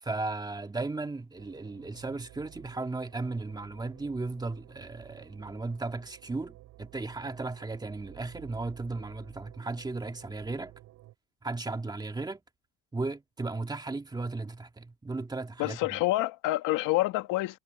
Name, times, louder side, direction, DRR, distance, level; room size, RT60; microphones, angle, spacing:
voice 1, 0.0-10.7 11.4-12.4 12.9-16.0, right 3 dB, 10° right, 2.3 m, -35 dB
sound 1, 1.4-11.1, right 16 dB, 55° right, 7.7 m, -53 dB
voice 2, 15.6-17.6, left 18 dB, 65° left, 2.0 m, -27 dB
cardioid pair, 125°, 33 cm